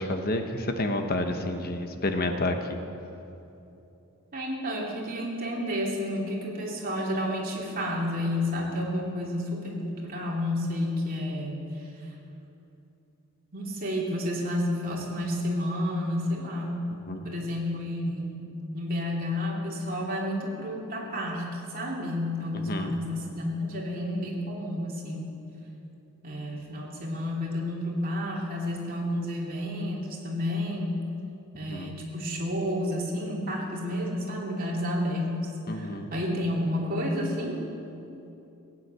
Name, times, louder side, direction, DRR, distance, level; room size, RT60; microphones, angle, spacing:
voice 1, 0.0-2.6 17.1-17.2 22.7-22.9 31.7-31.9 35.7-36.1, left 1 dB, 45° left, 6 dB, 1.0 m, -29 dB
voice 2, 4.3-12.1 13.5-16.8 17.2-18.4 18.7-25.3 26.2-31.0 31.5-37.6, left 1 dB, 45° right, -3 dB, 3.0 m, -30 dB
17.5 x 9.7 x 8.2 m, 2.8 s
head